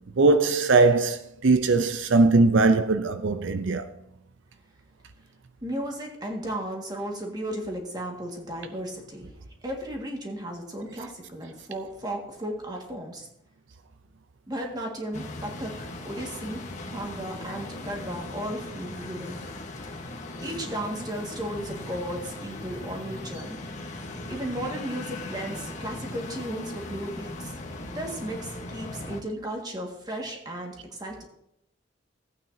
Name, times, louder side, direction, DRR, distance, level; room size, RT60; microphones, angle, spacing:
voice 1, 0.2-3.9, right 3 dB, 80° right, 0.6 m, -20 dB
voice 2, 5.6-9.3 9.6-13.3 14.5-16.6 16.9-19.3 20.4-23.6 24.3-31.2, right 1 dB, 20° right, 1.9 m, -35 dB
sound 1, 15.1-29.2, left 2 dB, 40° left, 1.3 m, -38 dB
15.0 x 8.8 x 2.8 m
head